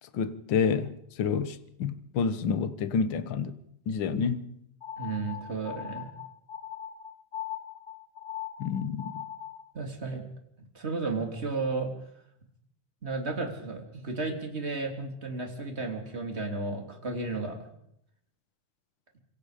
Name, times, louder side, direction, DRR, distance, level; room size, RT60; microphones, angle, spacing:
voice 1, 0.0-3.6 3.9-4.5 8.6-9.2, left 6 dB, 65° left, 1.2 m, -29 dB
sound 1, 4.8-9.7, left 10 dB, 85° left, 0.8 m, -40 dB
voice 2, 5.0-6.1 9.7-10.2 10.7-11.9 13.0-17.6, right 3 dB, 20° right, 3.2 m, -33 dB
27.0 x 24.0 x 5.2 m
omnidirectional pair, 3.8 m